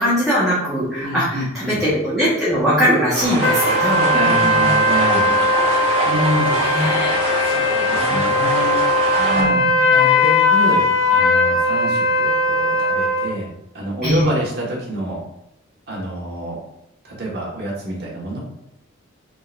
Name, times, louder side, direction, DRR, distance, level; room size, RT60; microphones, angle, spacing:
voice 1, 0.0-4.7 5.2-5.3 6.5-7.4 8.0-8.4 9.2-9.8 14.0-14.2, equal, ahead, -11 dB, 1.2 m, -21 dB
voice 2, 1.0-1.8 4.1-6.6 7.3-8.8 9.3-9.6 9.9-13.5 13.7-15.2 15.9-16.6 17.0-18.4, right 1 dB, 50° right, -4 dB, 1.5 m, -27 dB
sound 1, 3.1-9.4, right 1 dB, 30° right, 1.1 m, -24 dB
sound 2, 3.4-13.3, left 2 dB, 85° left, 0.8 m, -18 dB
4.7 x 3.9 x 2.6 m, 0.79 s
head